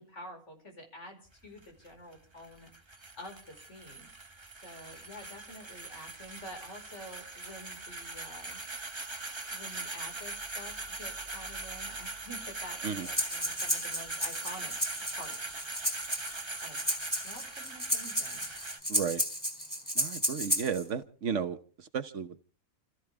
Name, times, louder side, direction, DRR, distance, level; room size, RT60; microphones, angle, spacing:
voice 1, 0.0-4.1 4.6-8.6 9.5-14.8 15.1-15.6 16.6-16.8 17.2-18.4, equal, 55° left, 3 dB, 5.2 m, -48 dB
sound 1, 1.3-18.8, right 3 dB, 20° right, 1.1 m, -41 dB
Breathing, 13.0-20.8, equal, 15° left, 3.7 m, -33 dB
voice 2, 18.9-19.2 19.9-22.4, right 7 dB, 60° right, 10 dB, 1.3 m, -34 dB
30.0 x 14.0 x 3.4 m, 0.41 s
omnidirectional pair, 1.4 m